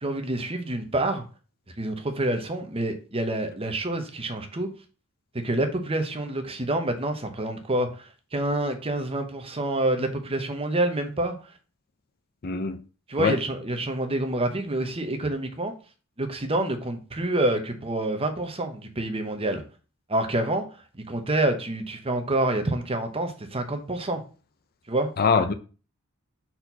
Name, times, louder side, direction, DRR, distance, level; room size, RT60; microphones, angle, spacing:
voice 1, 0.0-1.2 1.8-4.7 5.3-11.4 13.1-15.7 16.2-19.6 20.1-20.6 21.0-24.2 24.9-25.1, right 1 dB, 25° right, 0.9 m, -27 dB
voice 2, 12.4-12.8 13.2-13.4 25.2-25.5, left 5 dB, 45° left, 0.5 m, -23 dB
4.4 x 4.3 x 5.6 m
head